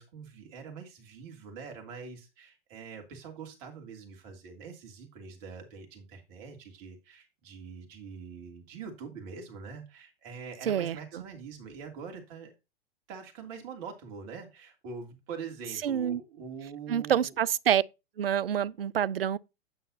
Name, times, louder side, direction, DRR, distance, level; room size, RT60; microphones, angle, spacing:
voice 1, 0.0-12.5 13.1-17.3, right 5 dB, 40° right, 2.8 m, -44 dB
voice 2, 10.6-11.2 15.8-16.2 16.9-17.8 18.2-19.4, right 9 dB, 70° right, 0.5 m, -27 dB
9.0 x 7.2 x 2.8 m
figure-of-eight pair, 105°, 30 cm